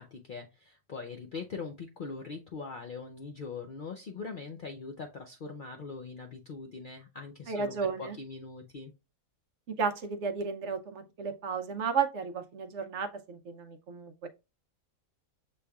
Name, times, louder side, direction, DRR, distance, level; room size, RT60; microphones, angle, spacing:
voice 1, 0.0-8.9, left 4 dB, 60° left, 0.5 m, -42 dB
voice 2, 7.5-8.2 9.8-14.3, right 5 dB, 60° right, 0.9 m, -33 dB
6.9 x 3.3 x 2.3 m
omnidirectional pair, 1.5 m